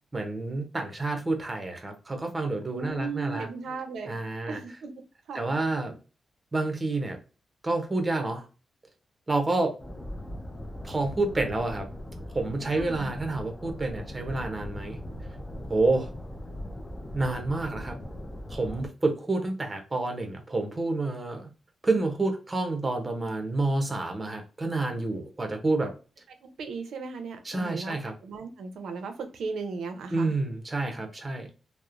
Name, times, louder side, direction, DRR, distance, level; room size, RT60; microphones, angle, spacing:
voice 1, 0.1-3.5 4.1-4.6 5.3-6.0 6.5-7.2 7.6-8.4 9.3-9.7 10.8-11.9 12.3-15.0 15.7-16.1 17.1-18.0 18.5-21.5 21.8-25.9 27.4-28.1 30.1-31.5, right 2 dB, 20° right, 0.6 m, -29 dB
voice 2, 2.7-4.2 4.5-4.9 5.3-5.5 12.7-13.1 26.4-28.0 28.2-30.3, right 4 dB, 85° right, 0.5 m, -36 dB
sound 1, 9.8-18.9, left 1 dB, 20° left, 0.5 m, -39 dB
2.9 x 2.0 x 2.4 m
wide cardioid pair, 120°, 0 cm